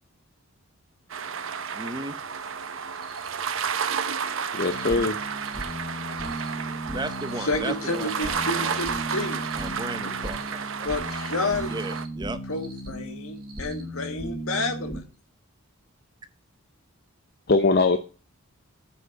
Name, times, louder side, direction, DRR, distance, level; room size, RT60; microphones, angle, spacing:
sound 1, 1.1-12.0, right 6 dB, 60° right, 0.8 m, -32 dB
voice 1, 1.7-2.1 6.9-8.8 9.6-10.9 11.7-12.4, right 2 dB, 20° right, 11 dB, 0.6 m, -35 dB
Cricket, 2.9-3.3 3.7-4.1 4.5-4.9 5.3-5.7 6.1-6.5 6.9-7.3 7.7-8.1 8.5-8.9 9.3-9.7 10.1-10.5 10.9-11.3 11.7-12.1 12.5-12.9 13.4-13.8, right 5 dB, 40° right, 2.5 m, -51 dB
voice 2, 4.4-5.2 17.5-18.0, left 3 dB, 45° left, 8 dB, 0.6 m, -21 dB
sound 2, 4.7-15.0, equal, ahead, 1.4 m, -36 dB
voice 3, 7.4-9.5 10.8-11.8 12.5-15.1, left 2 dB, 75° left, 5 dB, 1.9 m, -30 dB
9.5 x 4.3 x 6.9 m, 0.37 s
head